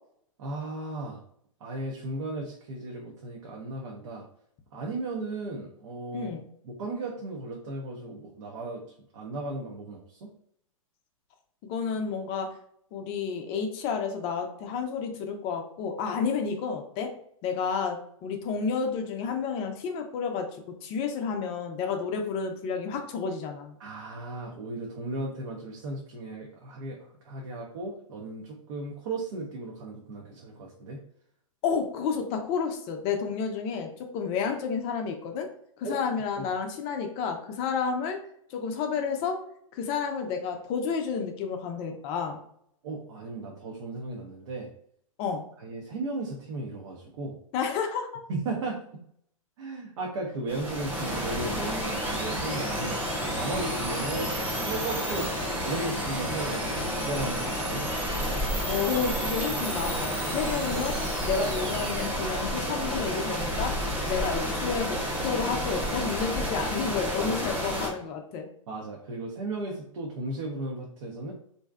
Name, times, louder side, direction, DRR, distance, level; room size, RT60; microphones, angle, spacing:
voice 1, 0.4-1.2 1.6-4.2 4.7-6.3 6.6-8.8 9.1-10.3 23.8-27.0 27.2-31.0 35.8-36.0 36.4-36.5 42.8-44.7 45.6-47.4 48.3-48.8 49.6-53.0 53.3-54.3 54.6-57.8 68.7-71.3, right 2 dB, 60° right, -1 dB, 0.6 m, -35 dB
voice 2, 11.7-12.5 12.9-17.1 17.4-20.5 20.8-23.7 31.6-35.5 35.8-38.2 38.5-39.4 39.7-42.4 45.2-45.4 47.5-48.2 58.7-61.0 61.2-68.5, left 6 dB, 30° left, 4 dB, 0.4 m, -30 dB
sound 1, 50.5-67.9, equal, 10° right, 0.6 m, -30 dB
sound 2, 51.3-62.1, right 2 dB, 25° right, 0.9 m, -39 dB
2.5 x 2.1 x 2.3 m, 0.67 s
hypercardioid pair, 120°, 18 cm